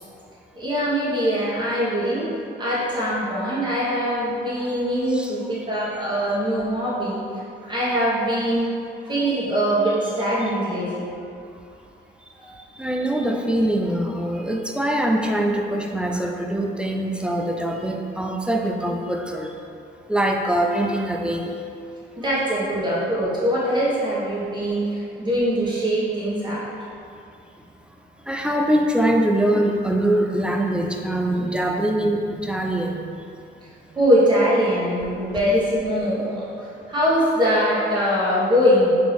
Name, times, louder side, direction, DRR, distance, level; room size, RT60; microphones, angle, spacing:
voice 1, 0.5-2.3 2.6-7.2 7.6-8.7 9.1-11.1 12.4-12.6 22.1-26.6 33.9-36.4 36.9-38.9, equal, 20° right, -9 dB, 1.5 m, -22 dB
voice 2, 12.8-19.5 20.1-21.5 28.3-33.2, right 1 dB, 5° right, 1 dB, 0.3 m, -23 dB
4.4 x 2.9 x 3.4 m, 2.5 s
cardioid pair, 90°, 20 cm